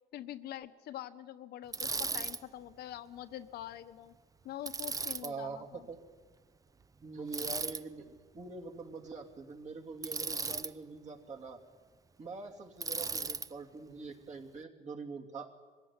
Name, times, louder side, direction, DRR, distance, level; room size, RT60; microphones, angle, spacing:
voice 1, 0.1-4.2 4.4-5.9, left 12 dB, 70° left, 9 dB, 1.2 m, -45 dB
Bicycle, 1.7-2.4 4.7-5.3 7.3-7.8 10.0-10.7 12.8-13.5, right 4 dB, 20° right, 0.7 m, -36 dB
voice 2, 5.2-6.0 7.0-11.6 12.2-15.5, right 4 dB, 45° right, 2 dB, 2.9 m, -44 dB
22.5 x 16.0 x 9.8 m, 1.5 s
cardioid pair, 110°, 17 cm